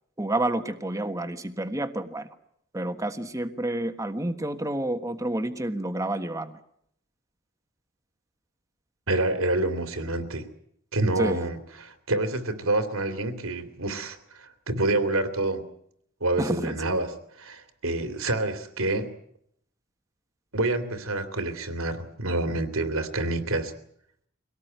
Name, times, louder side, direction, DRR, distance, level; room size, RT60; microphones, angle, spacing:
voice 1, 0.2-2.3 2.7-6.6 11.2-11.4 16.4-17.0, right 1 dB, 15° right, 8 dB, 1.4 m, -29 dB
voice 2, 9.1-10.5 10.9-15.6 16.2-17.1 17.4-19.1 20.5-23.7, right 2 dB, 80° right, 8 dB, 2.8 m, -27 dB
24.0 x 18.0 x 9.3 m, 0.71 s
head